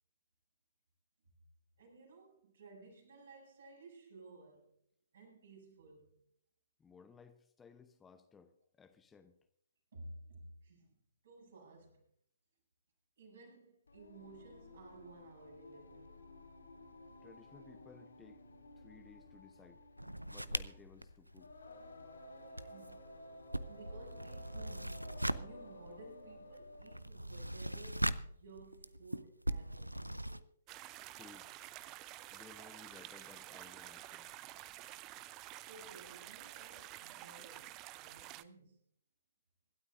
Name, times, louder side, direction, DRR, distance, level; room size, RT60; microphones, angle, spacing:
voice 1, 1.8-4.8 5.1-6.2 9.9-10.9 11.2-12.1 13.2-16.2 22.5-23.2 23.7-30.4 35.6-38.8, right 2 dB, 60° right, 7.6 m, -56 dB
voice 2, 6.8-9.3 17.2-18.4 18.8-19.8 20.3-21.5 31.2-31.5 32.3-34.3, left 5 dB, 10° left, 0.8 m, -59 dB
Singing, 13.9-27.1, left 1 dB, 70° left, 4.4 m, -54 dB
sound 1, 20.0-22.1 22.4-30.4, right 1 dB, 90° right, 0.6 m, -41 dB
sound 2, 30.7-38.4, right 15 dB, 25° right, 0.6 m, -50 dB
26.0 x 12.5 x 2.6 m
figure-of-eight pair, 125°, 0 cm